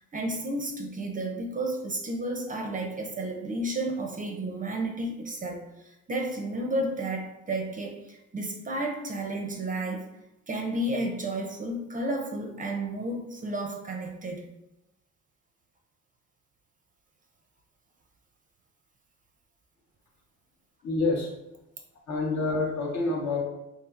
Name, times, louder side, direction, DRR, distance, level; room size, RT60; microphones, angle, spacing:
voice 1, 0.1-10.1 10.5-14.5, right 1 dB, 25° right, 2 dB, 0.4 m, -32 dB
voice 2, 20.8-21.3 22.1-23.4, left 3 dB, 65° left, -1 dB, 0.9 m, -27 dB
3.0 x 2.7 x 2.4 m, 0.90 s
cardioid pair, 90°, 30 cm